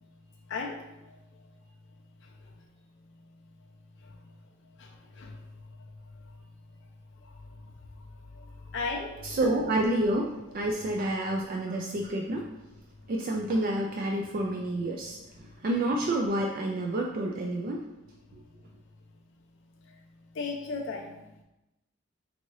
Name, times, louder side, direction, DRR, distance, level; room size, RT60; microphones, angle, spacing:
voice 1, 8.7-9.3 20.4-21.2, left 4 dB, 60° left, 1 dB, 0.4 m, -34 dB
voice 2, 9.2-12.5 13.1-17.8, right 1 dB, 45° right, 0 dB, 0.3 m, -29 dB
4.7 x 2.7 x 3.0 m, 0.96 s
head